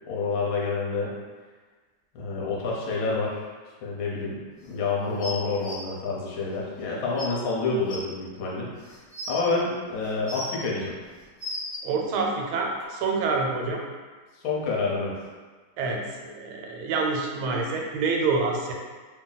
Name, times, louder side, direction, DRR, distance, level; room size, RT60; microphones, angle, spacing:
voice 1, 0.1-1.1 2.1-3.4 3.8-8.7 9.3-10.9 14.4-15.2, left 3 dB, 60° left, -4 dB, 0.9 m, -28 dB
sound 1, 5.2-5.7 6.8-6.9 7.2-7.3 7.9-8.0 8.8-9.4 10.0-10.7 11.1-11.8 12.8-12.9, left 1 dB, 25° left, 1.1 m, -35 dB
voice 2, 11.8-13.8 15.8-18.7, right 4 dB, 85° right, 1 dB, 1.4 m, -27 dB
2.8 x 2.7 x 3.9 m, 1.4 s
omnidirectional pair, 2.2 m